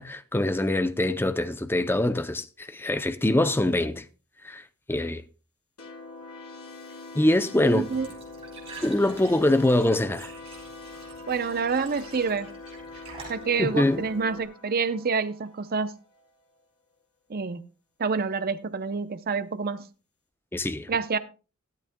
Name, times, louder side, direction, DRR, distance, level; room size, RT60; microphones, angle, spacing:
voice 1, 0.0-4.0 4.4-4.6 4.9-5.2 7.1-7.9 8.8-10.3 13.6-14.0 20.5-20.9, left 1 dB, 10° left, 0.5 m, -24 dB
sound 1, 5.8-16.3, left 3 dB, 75° left, 3.6 m, -44 dB
Glass / Trickle dribble / Fill (with liquid), 7.7-14.4, right 4 dB, 25° right, 3.8 m, -48 dB
voice 2, 7.7-8.1 11.3-12.5 13.3-15.9 17.3-17.6 18.0-19.8 20.9-21.2, right 5 dB, 45° right, 0.6 m, -27 dB
13.5 x 12.0 x 2.2 m
head